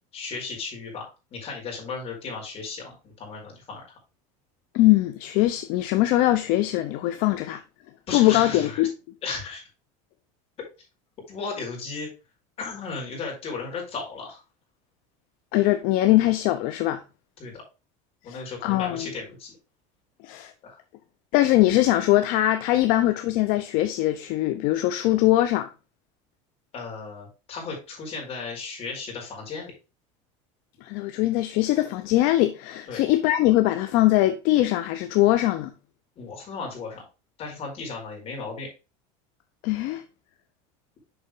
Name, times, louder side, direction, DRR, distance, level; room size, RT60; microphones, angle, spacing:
voice 1, 0.1-3.8 8.1-8.8 9.2-9.6 11.3-12.1 12.6-14.4 17.4-17.6 18.2-19.6 20.6-20.8 26.7-29.7 32.9-33.0 36.2-37.0 37.4-38.7, left 4 dB, 40° left, 4.7 m, -35 dB
voice 2, 4.7-7.6 8.1-8.9 15.5-17.0 18.3-19.1 20.2-20.5 21.3-25.7 30.8-35.7 39.6-40.0, left 15 dB, 65° left, 0.7 m, -22 dB
6.9 x 5.8 x 3.7 m
cardioid pair, 140°, 16 cm